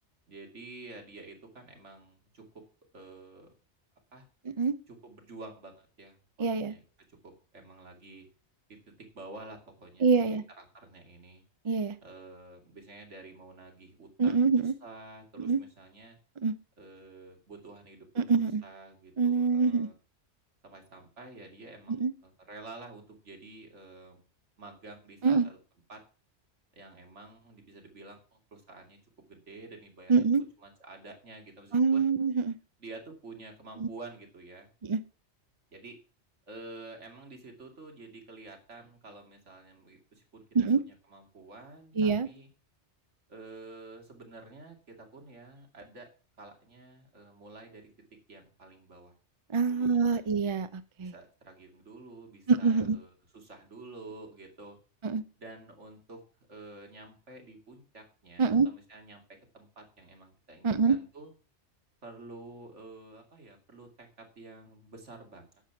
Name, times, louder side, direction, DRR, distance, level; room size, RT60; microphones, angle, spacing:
voice 1, 0.3-2.4 2.9-3.5 4.1-4.3 4.9-6.8 7.1-8.3 8.7-11.4 12.0-16.2 16.8-19.9 20.6-24.2 24.6-25.6 25.9-26.0 26.7-29.0 29.3-30.1 30.6-32.1 32.8-34.7 35.7-36.0 36.5-40.4 40.9-42.5 43.3-46.1 46.4-47.9 48.3-49.1 49.6-50.2 51.0-54.8 55.4-56.2 56.5-59.2 59.5-61.3 62.0-65.6, right 3 dB, 85° right, 3 dB, 2.8 m, -49 dB
voice 2, 6.4-6.8 10.0-10.4 11.6-12.0 14.2-14.7 15.4-15.6 16.4-16.5 18.2-18.6 19.2-19.9 21.9-22.1 25.2-25.5 30.1-30.4 31.7-32.6 33.8-33.9 34.8-35.0 40.5-40.8 42.0-42.3 49.5-51.1 52.5-53.0 55.0-55.2 58.4-58.7 60.6-61.0, right 5 dB, 40° right, 12 dB, 0.4 m, -25 dB
10.0 x 7.5 x 5.9 m, 0.38 s
omnidirectional pair, 1.2 m